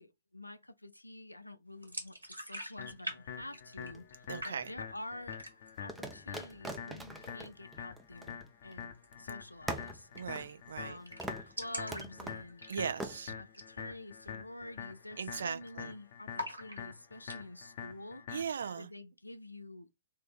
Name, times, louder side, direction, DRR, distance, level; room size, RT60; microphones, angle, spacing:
voice 1, 0.0-5.4 5.8-10.1 10.7-12.6 13.3-18.2 18.7-19.9, left 1 dB, 90° left, 0.4 m, -48 dB
sound 1, 1.8-3.2 3.4-4.1 4.4-5.0 5.3-5.8 6.2-6.3 6.6-7.2 8.9-9.1 9.4-9.5 9.7-9.8 10.2-10.5 10.8-10.9 11.1-13.1 13.5-13.7 14.1-14.2 14.7-15.0 15.3-15.9 16.3-17.4, equal, 85° right, 1.5 m, -43 dB
sound 2, 2.8-18.8, left 8 dB, 50° left, 0.9 m, -46 dB
sound 3, 3.8-4.7 5.9-8.9 9.1-9.2 9.7-10.9 11.2-11.5 11.9-12.5 13.0-13.2, right 2 dB, 5° right, 0.6 m, -43 dB
voice 2, 4.3-4.7 10.1-11.0 12.7-13.3 15.2-15.9 18.3-18.9, right 6 dB, 65° right, 0.6 m, -38 dB
3.6 x 2.8 x 4.2 m
figure-of-eight pair, 120°, 0 cm